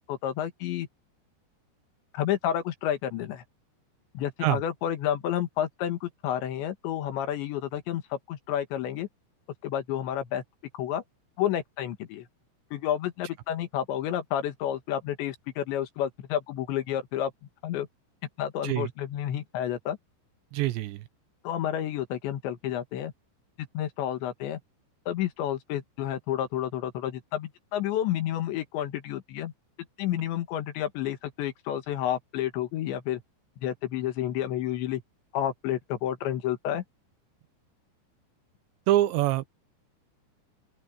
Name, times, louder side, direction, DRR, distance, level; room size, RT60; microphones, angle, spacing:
voice 1, 0.1-0.9 2.1-3.4 4.2-9.1 9.6-10.4 10.7-11.0 11.4-12.3 12.7-17.3 17.6-17.9 18.4-20.0 21.5-23.1 23.6-24.6 25.1-29.5 30.0-33.2 33.6-35.0 35.3-36.8, left 11 dB, 75° left, 3.9 m, -30 dB
voice 2, 20.5-21.0 38.9-39.5, right 15 dB, 80° right, 3.0 m, -25 dB
open air
omnidirectional pair, 5.3 m